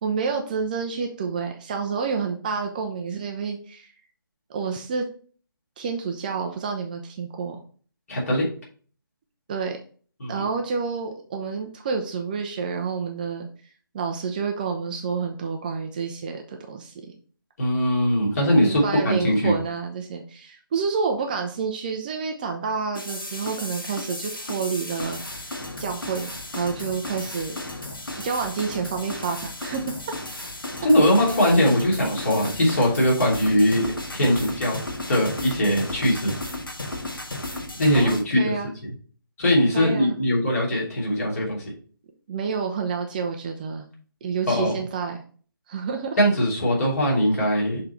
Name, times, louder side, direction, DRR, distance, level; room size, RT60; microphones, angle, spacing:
voice 1, 0.0-3.9 4.5-5.1 5.8-7.6 9.5-9.8 10.3-13.5 13.9-17.0 18.6-27.6 28.2-29.8 38.0-38.7 39.7-40.1 42.3-43.9 44.2-45.2 45.7-46.2, right 5 dB, 25° right, 3 dB, 0.5 m, -29 dB
voice 2, 8.1-8.4 10.2-10.4 17.6-19.5 30.8-33.9 34.1-34.8 35.1-36.3 37.8-38.5 38.8-38.9 39.4-41.6 44.5-44.7 46.2-47.8, equal, 45° left, -3 dB, 3.0 m, -21 dB
sound 1, 22.9-38.2, left 2 dB, 70° left, 1.6 m, -34 dB
6.7 x 3.8 x 4.3 m, 0.43 s
figure-of-eight pair, 145°, 12 cm